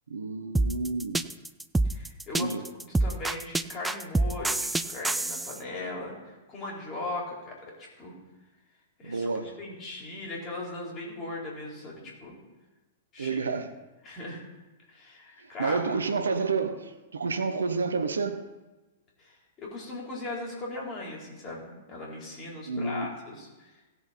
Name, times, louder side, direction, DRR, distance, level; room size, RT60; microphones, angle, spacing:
voice 1, 0.1-1.3 2.3-2.6 9.0-9.5 13.2-13.7 15.4-18.4 22.7-23.1, right 4 dB, 70° right, 9 dB, 1.0 m, -30 dB
sound 1, 0.5-5.6, right 2 dB, 5° right, 0.4 m, -27 dB
voice 2, 1.8-2.5 3.0-7.5 7.8-8.1 9.0-12.4 13.1-13.4 14.0-14.4 14.9-15.8 19.2-23.7, left 2 dB, 25° left, -3 dB, 4.2 m, -38 dB
17.5 x 7.1 x 4.4 m, 1.1 s
figure-of-eight pair, 105°, 0 cm